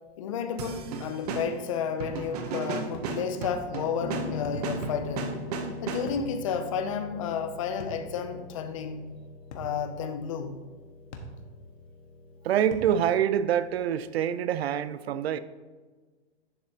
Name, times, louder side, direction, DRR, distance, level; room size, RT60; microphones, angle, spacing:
voice 1, 0.2-5.4 5.8-9.0 9.5-10.6, left 7 dB, 30° left, 0.5 m, -32 dB
sound 1, 0.6-6.3, right 5 dB, 35° right, 0.8 m, -35 dB
sound 2, 1.2-1.5 2.9-3.2 4.4-4.7 6.1-6.3 7.8-8.1 9.5-9.8 11.1-11.4 12.7-13.0, left 1 dB, 80° left, 1.6 m, -42 dB
Piano, 4.0-14.1, left 4 dB, 45° left, 1.8 m, -42 dB
voice 2, 12.4-15.4, right 9 dB, 65° right, 0.6 m, -26 dB
11.0 x 7.6 x 2.8 m
hypercardioid pair, 160°, 34 cm